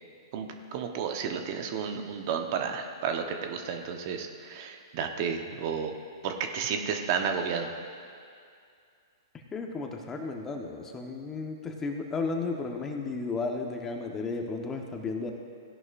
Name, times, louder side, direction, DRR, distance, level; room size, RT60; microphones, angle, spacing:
voice 1, 0.3-5.9 6.2-7.7, right 6 dB, 45° right, 5 dB, 1.0 m, -32 dB
voice 2, 9.5-15.3, left 3 dB, 15° left, 2 dB, 1.2 m, -33 dB
17.0 x 11.0 x 2.6 m, 2.3 s
hypercardioid pair, 125°, 2 cm